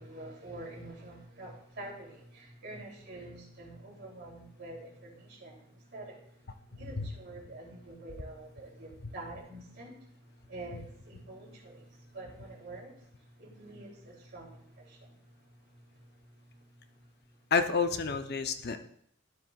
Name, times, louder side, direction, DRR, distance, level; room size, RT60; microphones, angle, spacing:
voice 1, 0.0-5.6 5.9-6.1 6.7-10.0 10.5-12.9 13.4-15.1, right 2 dB, 60° right, 3.0 m, -46 dB
voice 2, 17.5-18.8, left 5 dB, 55° left, 0.6 m, -30 dB
12.5 x 7.5 x 2.4 m
head